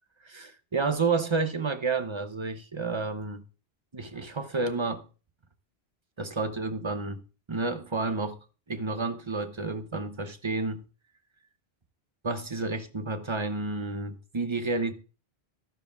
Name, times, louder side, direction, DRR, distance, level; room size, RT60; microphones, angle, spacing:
voice 1, 0.2-3.4 3.9-5.1 6.2-7.2 7.5-8.4 8.7-10.8 12.2-14.9, right 3 dB, 30° right, 0.7 m, -30 dB
12.5 x 12.0 x 2.4 m
omnidirectional pair, 1.1 m